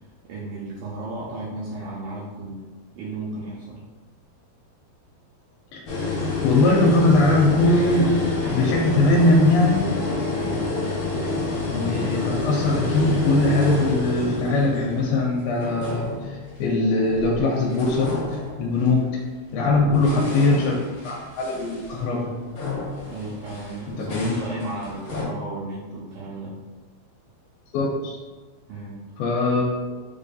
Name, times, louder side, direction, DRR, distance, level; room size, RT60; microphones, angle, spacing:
voice 1, 0.2-2.7 2.9-3.8 10.4-10.8 19.8-20.1 23.1-26.6 28.7-29.0, right 2 dB, 80° right, -6 dB, 2.0 m, -35 dB
sound 1, 5.9-17.4 17.7-19.1 19.7-25.2, left 3 dB, 60° left, 2.3 m, -29 dB
voice 2, 6.4-8.1 8.5-9.9 11.7-19.1 19.5-20.7 21.0-22.3 24.0-24.3 27.7-28.2 29.2-29.6, left 2 dB, 85° left, -3 dB, 2.5 m, -21 dB
6.9 x 2.6 x 2.3 m, 1.3 s
omnidirectional pair, 4.3 m